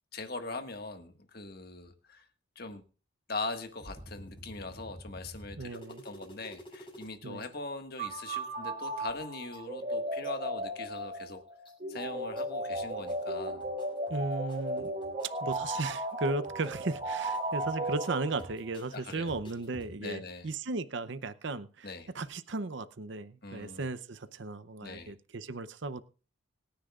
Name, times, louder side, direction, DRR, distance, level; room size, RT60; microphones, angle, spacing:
voice 1, 0.1-2.3 2.5-2.8 3.3-11.4 11.9-13.7 18.9-19.3 20.0-20.5 21.8-22.1 23.4-23.9 24.8-25.1, left 3 dB, 50° left, 6 dB, 1.7 m, -41 dB
sound 1, 3.8-7.1 7.4-7.5 7.8-8.5 8.8-10.3 10.8-11.3 11.7-12.4 12.7-19.9, equal, 25° left, 6.7 m, -50 dB
voice 2, 5.6-6.0 7.2-7.5 14.1-14.9 15.4-26.0, right 3 dB, 60° right, 13 dB, 0.6 m, -36 dB
sound 2, 8.0-18.7, right 1 dB, 35° right, 2.7 m, -35 dB
25.5 x 10.0 x 2.4 m, 0.36 s
head